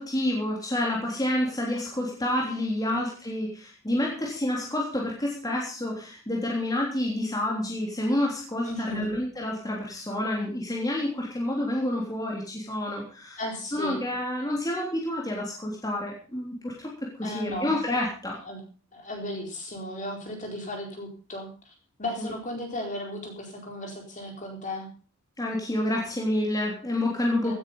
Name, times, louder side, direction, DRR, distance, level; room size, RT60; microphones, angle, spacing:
voice 1, 0.0-13.4 13.7-16.9 17.2-18.4 22.2-22.3 25.4-27.5, left 1 dB, 20° left, -2 dB, 3.4 m, -29 dB
voice 2, 8.6-9.1 13.4-14.0 17.2-17.7 18.5-18.6 18.9-21.7 22.0-24.9 27.4-27.5, left 1 dB, 35° left, 2 dB, 4.4 m, -35 dB
16.5 x 9.8 x 5.5 m, 0.39 s
head